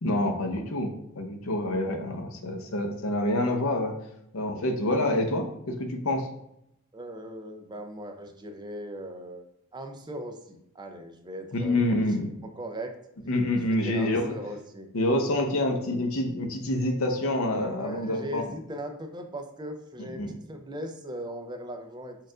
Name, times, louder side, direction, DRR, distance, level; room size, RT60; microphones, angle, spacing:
voice 1, 0.0-3.9 4.3-6.3 11.5-12.3 13.3-14.3 14.9-18.4 20.0-20.4, left 1 dB, 75° left, 4 dB, 0.8 m, -27 dB
voice 2, 6.9-12.0 12.6-12.9 13.6-14.9 17.6-22.2, equal, 20° right, 5 dB, 0.5 m, -39 dB
4.5 x 2.5 x 4.8 m, 0.79 s
head